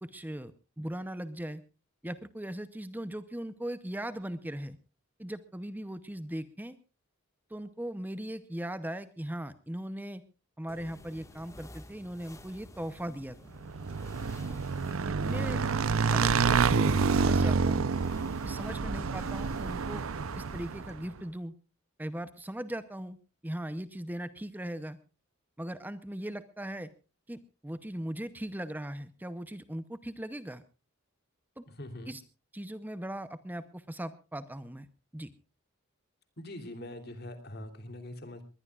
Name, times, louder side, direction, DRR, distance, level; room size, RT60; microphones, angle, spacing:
voice 1, 0.0-1.6 2.0-4.8 5.2-6.8 7.5-10.2 10.6-13.6 14.5-14.6 15.1-15.6 16.1-17.9 18.4-20.0 20.3-21.5 22.0-23.2 23.4-25.0 25.6-26.9 27.3-30.6 31.6-31.7 32.1-32.2 32.5-34.9 35.1-35.3, right 1 dB, 10° right, 12 dB, 0.7 m, -39 dB
sound 1, 10.7-21.0, left 1 dB, 15° left, 1.6 m, -52 dB
Motorcycle / Engine, 13.6-21.0, right 5 dB, 85° right, 0.7 m, -28 dB
voice 2, 31.7-32.2 36.4-38.4, left 1 dB, 50° left, 8 dB, 3.1 m, -43 dB
21.0 x 20.5 x 2.4 m, 0.32 s
head